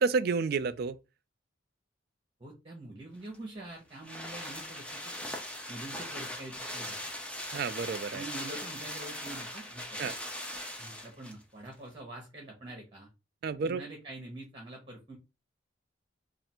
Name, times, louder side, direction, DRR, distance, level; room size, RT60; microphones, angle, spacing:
voice 1, 0.0-1.0 7.5-8.2 10.0-10.1 13.4-13.8, right 4 dB, 50° right, 0.3 m, -30 dB
voice 2, 2.4-5.4 5.7-7.0 8.1-10.1 10.8-13.1 13.6-15.2, right 2 dB, 25° right, 1.0 m, -45 dB
sound 1, 3.2-11.4 11.7-11.8, left 1 dB, 5° left, 0.5 m, -40 dB
3.3 x 2.5 x 4.3 m
head